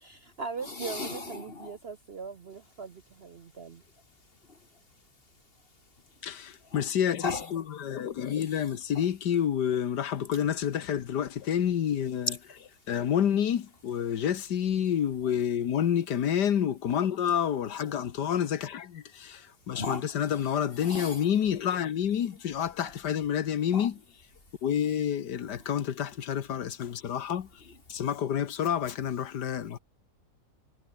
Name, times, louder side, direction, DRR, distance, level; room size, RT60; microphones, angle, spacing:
voice 1, 0.0-3.8, right 5 dB, 45° right, 0.9 m, -40 dB
voice 2, 0.6-1.8 3.4-3.6 4.5-6.9 7.2-7.5 8.2-9.1 12.3-12.9 15.2-15.3 17.9-18.0 19.7-21.3 22.2-22.4 22.8-23.0 23.7-23.9 24.8-24.9 25.4-25.7 27.0-27.2 27.6-27.8 29.7-29.8, left 3 dB, 35° left, 2.9 m, -40 dB
voice 3, 6.2-12.3 12.9-23.9 24.6-29.8, left 9 dB, 85° left, 1.8 m, -29 dB
omnidirectional pair, 1.8 m